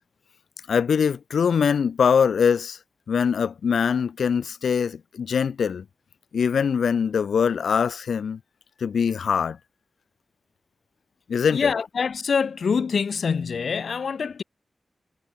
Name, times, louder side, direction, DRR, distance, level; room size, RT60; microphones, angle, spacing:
voice 1, 0.7-2.8 3.1-5.8 6.3-8.4 8.8-9.6 11.3-11.7, left 6 dB, 90° left, 2.7 m, -22 dB
voice 2, 11.5-14.4, left 5 dB, 65° left, 1.4 m, -25 dB
wide cardioid pair, 165°, 0 cm